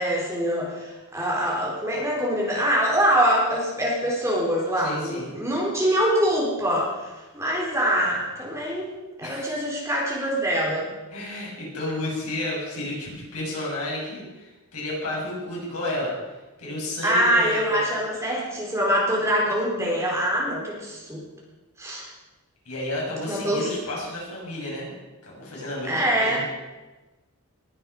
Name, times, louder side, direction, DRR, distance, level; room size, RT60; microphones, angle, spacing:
voice 1, 0.0-7.1 7.3-8.9 9.2-10.9 17.0-21.2 21.8-22.1 23.3-23.7 25.8-26.4, equal, 15° right, -3 dB, 4.1 m, -24 dB
voice 2, 4.8-5.3 9.2-9.6 11.1-16.1 16.6-18.0 22.6-25.0 25.2-26.4, left 1 dB, 80° left, -4 dB, 6.7 m, -32 dB
19.5 x 9.3 x 5.5 m, 1.1 s
head